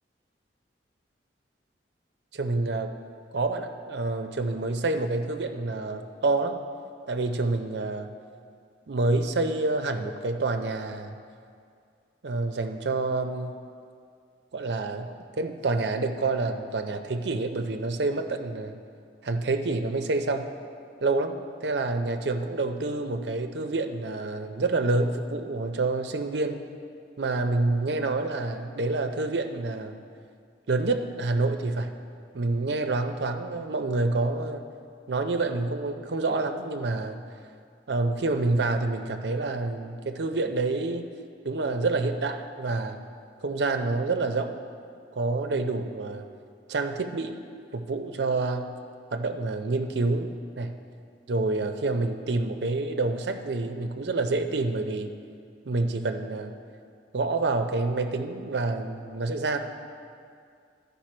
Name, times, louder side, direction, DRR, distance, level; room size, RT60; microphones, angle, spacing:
voice 1, 2.3-2.9 3.3-6.6 7.1-8.1 8.9-11.2 12.2-13.5 14.5-18.8 19.2-20.5 21.0-26.6 27.2-30.0 30.7-31.9 32.3-34.6 35.1-37.2 37.9-41.1 41.4-43.0 43.4-44.6 45.1-46.2 46.7-47.4 47.7-48.7 49.1-50.8 51.3-55.1 55.7-56.5 57.1-59.6, right 3 dB, 70° right, 7 dB, 0.6 m, -28 dB
13.5 x 5.5 x 4.4 m, 2.3 s
head